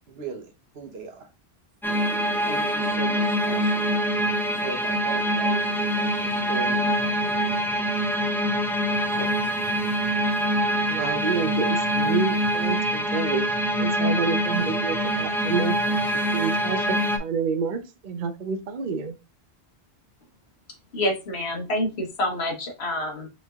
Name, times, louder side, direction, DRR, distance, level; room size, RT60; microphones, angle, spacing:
voice 1, 0.1-1.3 2.4-3.9 4.5-7.2 9.1-9.5, right 4 dB, 75° right, 1.1 m, -39 dB
sound 1, 1.8-17.2, equal, 5° left, 0.3 m, -24 dB
voice 2, 10.9-13.4 13.8-16.0 16.3-19.1, right 5 dB, 55° right, 0.7 m, -29 dB
voice 3, 20.9-23.3, left 1 dB, 80° left, 1.3 m, -27 dB
5.2 x 3.3 x 2.4 m
omnidirectional pair, 1.1 m